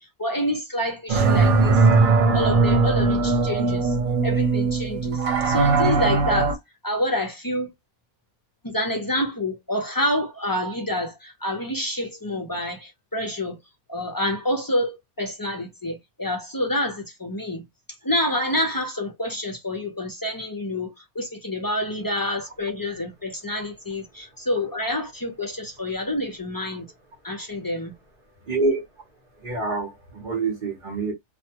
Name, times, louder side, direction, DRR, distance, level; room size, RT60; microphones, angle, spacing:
voice 1, 0.2-1.8 2.3-3.9 4.2-6.6 6.8-7.7 8.6-13.6 13.9-17.6 18.0-26.9 27.2-27.9, left 1 dB, 30° left, 0.4 m, -27 dB
sound 1, 1.1-6.5, right 4 dB, 75° right, 1.0 m, -19 dB
voice 2, 28.4-28.8 29.3-31.1, right 3 dB, 40° right, 0.9 m, -26 dB
2.4 x 2.2 x 2.7 m
omnidirectional pair, 1.4 m